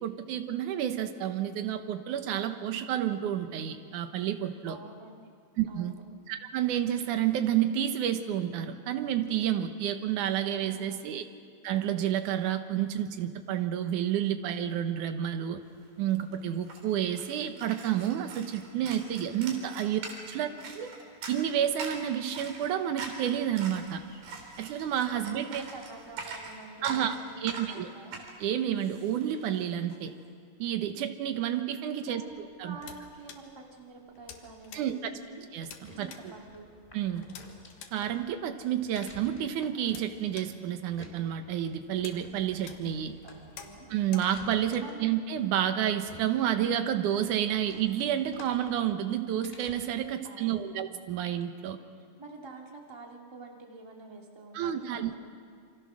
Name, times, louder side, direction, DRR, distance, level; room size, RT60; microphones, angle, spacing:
voice 1, 0.0-4.8 5.6-5.9 6.3-11.2 11.6-15.6 16.0-20.0 20.3-20.5 20.8-20.9 21.3-24.0 24.6-25.6 26.8-27.2 27.4-27.9 28.4-30.1 30.6-32.2 32.6-32.8 34.7-35.0 35.5-36.3 36.9-37.3 37.9-43.1 43.9-51.8 54.5-55.2, right 10 dB, 65° right, 8 dB, 2.4 m, -30 dB
voice 2, 4.7-5.2 5.7-6.0 10.6-11.2 19.7-19.9 20.4-20.8 25.3-28.2 32.0-35.4 35.9-36.7 43.2-43.9 44.8-45.2 50.2-51.0 51.9-55.2, right 3 dB, 10° right, 0 dB, 1.6 m, -48 dB
sound 1, 15.8-15.9 16.1-30.0, right 4 dB, 90° right, 5.0 m, -43 dB
sound 2, 32.3-46.5, left 7 dB, 80° left, 3.2 m, -53 dB
sound 3, 35.8-50.1, left 1 dB, 15° left, 2.8 m, -53 dB
27.5 x 25.0 x 6.3 m, 2.1 s
omnidirectional pair, 4.1 m